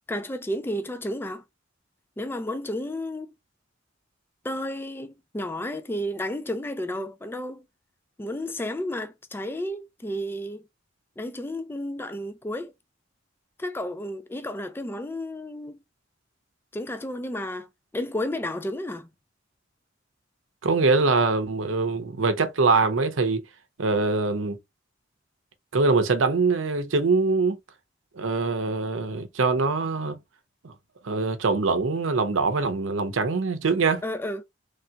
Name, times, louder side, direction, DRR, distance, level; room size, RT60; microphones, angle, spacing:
voice 1, 0.1-1.4 2.2-3.3 4.4-7.6 8.2-10.6 11.2-12.7 13.6-15.8 16.7-17.7 17.9-19.1 34.0-34.4, left 1 dB, 10° left, 0.4 m, -32 dB
voice 2, 20.6-23.4 23.8-24.6 25.7-27.6 28.2-30.2 30.6-30.7 31.0-34.0, right 3 dB, 90° right, 0.7 m, -23 dB
3.3 x 2.8 x 2.2 m
head